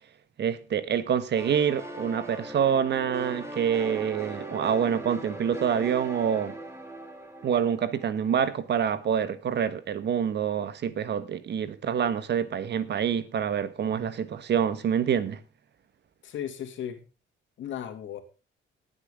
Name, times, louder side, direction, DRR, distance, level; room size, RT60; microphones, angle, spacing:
voice 1, 0.4-6.5 7.4-15.4, right 8 dB, 60° right, 1.4 m, -26 dB
sound 1, 1.4-8.8, right 2 dB, 15° right, 3.7 m, -39 dB
voice 2, 16.2-17.0 17.6-18.2, left 9 dB, 75° left, 2.6 m, -35 dB
19.5 x 8.0 x 3.7 m
cardioid pair, 90°, 20 cm